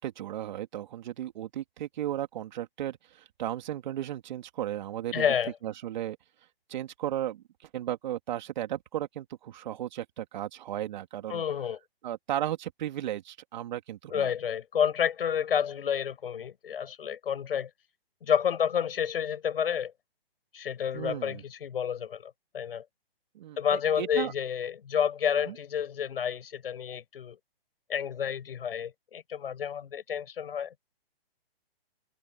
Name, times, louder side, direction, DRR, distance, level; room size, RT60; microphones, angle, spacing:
voice 1, 0.0-3.0 3.4-5.3 5.6-6.2 6.7-7.4 7.7-11.4 12.0-14.3 20.9-21.4 23.3-24.3 25.5-25.6, right 12 dB, 45° right, 3.2 m, -35 dB
voice 2, 5.1-5.6 11.3-11.8 14.1-17.7 18.2-19.9 20.5-22.8 23.6-27.4 27.9-30.7, left 8 dB, 65° left, 7.6 m, -30 dB
hypercardioid pair, 150°, 31 cm